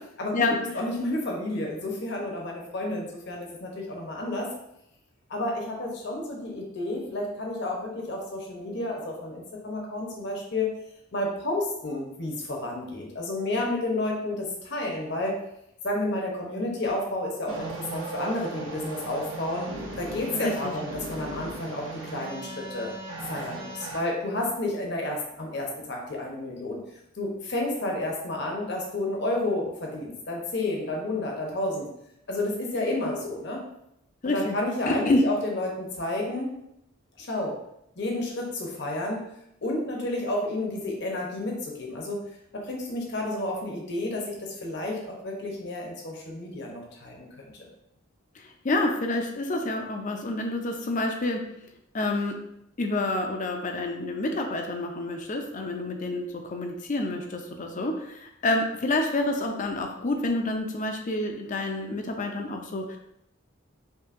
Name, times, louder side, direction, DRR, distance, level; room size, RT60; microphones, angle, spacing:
voice 1, 0.7-4.5 5.3-10.7 11.1-15.3 15.8-22.9 23.3-26.8 27.1-31.9 32.3-33.6 34.2-36.5 37.2-37.6 38.0-39.2 39.6-47.4, left 2 dB, 55° left, -1 dB, 0.9 m, -31 dB
sound 1, 17.5-24.0, right 2 dB, 65° right, 1.0 m, -38 dB
voice 2, 20.3-20.7 34.2-34.6 34.9-35.2 48.4-51.4 51.9-52.4 52.8-63.0, left 2 dB, 35° left, 4 dB, 0.5 m, -28 dB
5.4 x 2.7 x 2.5 m, 0.80 s
head